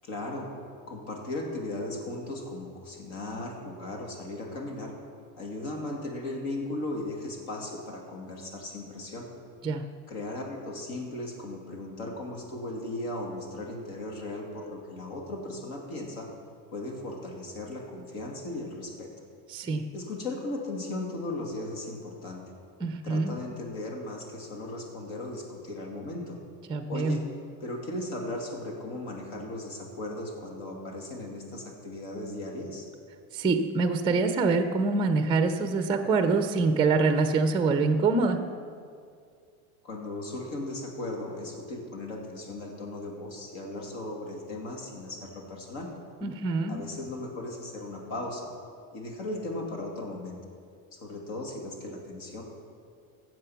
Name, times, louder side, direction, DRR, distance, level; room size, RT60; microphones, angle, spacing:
voice 1, 0.0-0.5 0.9-4.9 5.4-9.3 10.1-16.3 16.7-19.1 19.9-22.4 23.0-26.4 26.9-27.2 27.6-32.9 39.8-45.9 46.7-48.5 48.9-50.4 50.9-52.4, left 2 dB, 65° left, 0 dB, 2.5 m, -37 dB
voice 2, 19.5-19.8 22.8-23.4 26.7-27.2 33.3-38.4 46.2-46.8, right 4 dB, 15° right, 8 dB, 0.5 m, -25 dB
13.5 x 7.7 x 5.8 m, 2.3 s
supercardioid pair, 135°, 41 cm